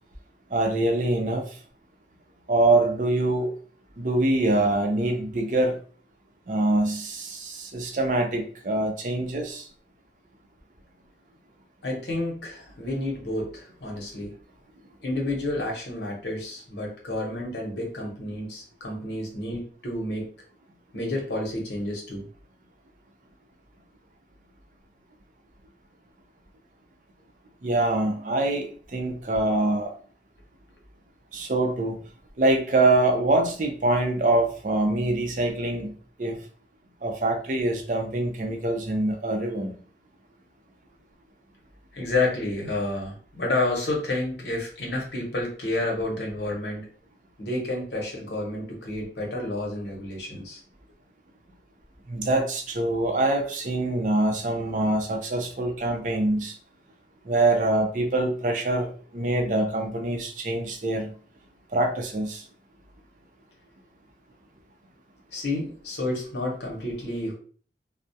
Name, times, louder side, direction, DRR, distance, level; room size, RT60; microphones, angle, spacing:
voice 1, 0.5-1.6 2.5-3.5 4.0-5.8 6.5-9.7 27.6-29.9 31.3-32.0 32.4-35.9 36.2-36.4 37.0-39.7 52.1-56.5 57.3-61.1 61.7-62.4, right 2 dB, 45° right, 3 dB, 0.5 m, -24 dB
voice 2, 11.8-14.4 15.0-20.3 20.9-22.3 41.9-46.9 47.4-50.6 65.3-67.3, left 2 dB, 70° left, -1 dB, 0.8 m, -30 dB
2.3 x 2.0 x 2.7 m, 0.43 s
head